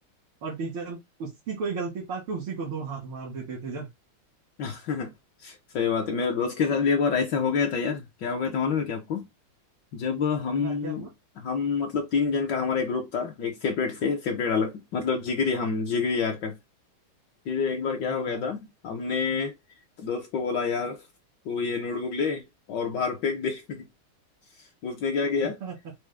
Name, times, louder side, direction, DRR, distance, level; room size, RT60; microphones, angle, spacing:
voice 1, 0.4-3.9 6.7-6.9 10.6-11.1 18.1-18.5 25.6-25.7, right 4 dB, 90° right, 2.6 m, -34 dB
voice 2, 4.6-5.1 5.4-9.3 9.9-11.1 11.4-16.6 17.5-19.5 20.0-21.0 21.4-22.4 22.7-23.8 24.8-25.6, left 5 dB, 65° left, 1.3 m, -27 dB
6.0 x 2.2 x 3.3 m
omnidirectional pair, 2.3 m